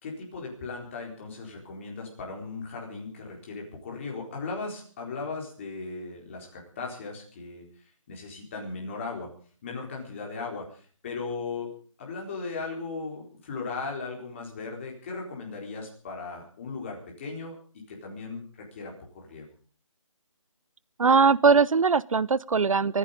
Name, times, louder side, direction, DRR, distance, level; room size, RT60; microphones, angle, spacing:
voice 1, 0.0-7.7 8.1-9.3 9.6-11.7 12.0-17.6 17.9-19.5, left 4 dB, 25° left, 0 dB, 4.3 m, -37 dB
voice 2, 21.0-23.0, right 5 dB, 80° right, 22 dB, 0.7 m, -21 dB
24.0 x 10.5 x 5.3 m, 0.43 s
figure-of-eight pair, 170°, 17 cm